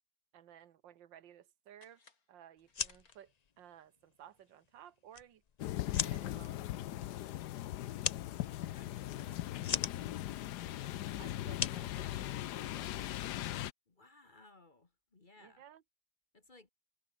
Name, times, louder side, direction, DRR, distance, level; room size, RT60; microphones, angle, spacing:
voice 1, 0.3-2.0 2.3-5.4 5.8-7.1 9.2-9.4 11.2-13.2 15.4-15.8, right 10 dB, 85° right, 1.8 m, -57 dB
sound 1, 1.7-3.7, left 4 dB, 50° left, 3.3 m, -68 dB
sound 2, 2.6-12.8, left 6 dB, 90° left, 0.3 m, -42 dB
sound 3, 5.6-13.7, left 14 dB, 70° left, 1.2 m, -39 dB
voice 2, 13.9-15.6 16.3-16.7, left 2 dB, 30° left, 1.5 m, -63 dB
omnidirectional pair, 2.0 m